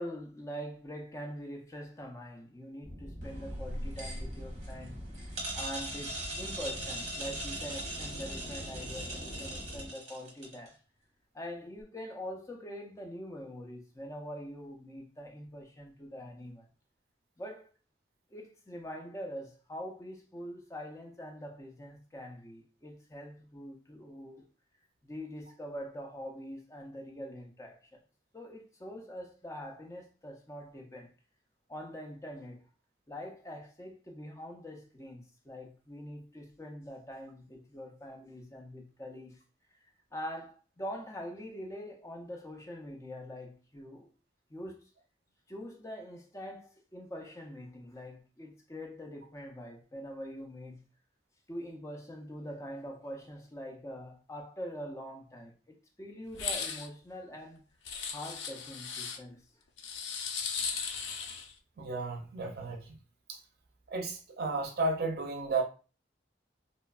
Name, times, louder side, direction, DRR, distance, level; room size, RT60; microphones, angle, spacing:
voice 1, 0.0-5.3 5.5-10.8 11.3-16.7 17.4-17.7 18.3-24.5 25.0-28.0 28.3-31.1 31.7-32.7 33.1-39.4 40.1-44.1 44.5-44.9 45.5-50.9 51.5-57.6 58.1-59.4, equal, 15° left, 0.4 m, -44 dB
sound 1, 2.8-9.9, equal, 55° left, 1.0 m, -45 dB
sound 2, 3.2-10.7, right 1 dB, 40° right, 1.0 m, -40 dB
sound 3, 56.3-56.9 57.9-59.2 59.8-61.5, left 6 dB, 90° left, 0.4 m, -37 dB
voice 2, 61.8-63.0 63.3-63.4 63.9-65.6, right 3 dB, 55° right, 0.5 m, -33 dB
2.9 x 2.2 x 2.3 m
head